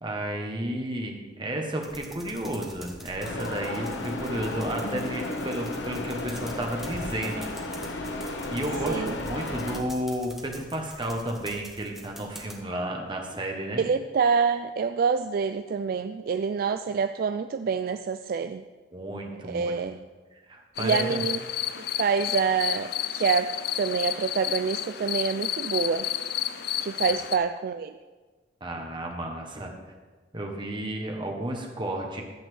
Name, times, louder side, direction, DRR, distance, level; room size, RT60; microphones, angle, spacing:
voice 1, 0.0-7.4 8.5-13.8 18.9-19.8 20.3-21.2 28.6-29.7 30.3-32.2, right 1 dB, 25° right, 1 dB, 1.4 m, -32 dB
sound 1, 1.8-12.6, right 1 dB, ahead, 1.3 m, -45 dB
sound 2, 3.2-9.8, left 2 dB, 85° left, 1.0 m, -33 dB
voice 2, 8.8-9.1 13.8-18.6 19.5-20.0 20.8-21.4 21.8-26.1 26.8-27.9, right 5 dB, 55° right, 9 dB, 0.3 m, -26 dB
sound 3, 20.8-27.4, left 11 dB, 60° left, 0.4 m, -31 dB
12.0 x 4.4 x 7.9 m, 1.3 s
head